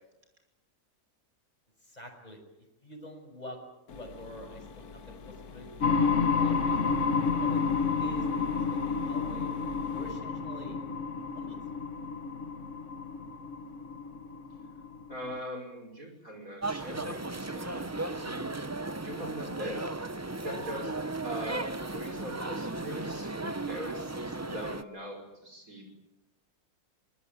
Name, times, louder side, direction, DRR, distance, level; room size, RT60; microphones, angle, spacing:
voice 1, 1.8-2.4 2.8-3.6 3.9-6.9 7.4-8.3 8.5-9.5 9.9-10.8 11.3-11.6, left 1 dB, 25° left, 3 dB, 6.2 m, -47 dB
sound 1, 3.9-10.1, left 5 dB, 75° left, 1.7 m, -48 dB
sound 2, 5.8-15.4, left 5 dB, 50° left, 1.7 m, -30 dB
voice 2, 15.1-18.5 19.0-19.8 20.4-20.9 21.2-25.9, equal, 60° right, 3 dB, 6.0 m, -41 dB
sound 3, 16.6-24.8, right 2 dB, 15° right, 0.5 m, -36 dB
24.5 x 20.0 x 9.3 m, 0.96 s
omnidirectional pair, 1.6 m